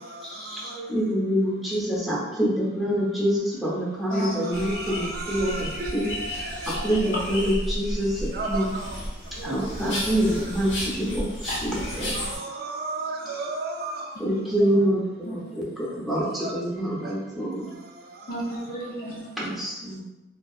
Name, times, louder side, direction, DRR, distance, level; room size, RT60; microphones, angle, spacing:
voice 1, 0.2-6.1 6.7-8.7 9.4-12.1 14.2-17.7 19.4-20.0, equal, ahead, -6 dB, 0.7 m, -26 dB
sound 1, 4.5-12.4, left 1 dB, 90° left, 1.2 m, -33 dB
voice 2, 4.5-6.9 8.3-8.8 12.0-14.0 16.4-16.5, right 3 dB, 55° right, 1 dB, 0.4 m, -33 dB
voice 3, 15.2-16.0 18.3-19.3, equal, 50° left, -5 dB, 0.6 m, -34 dB
2.7 x 2.3 x 2.4 m, 1.0 s
head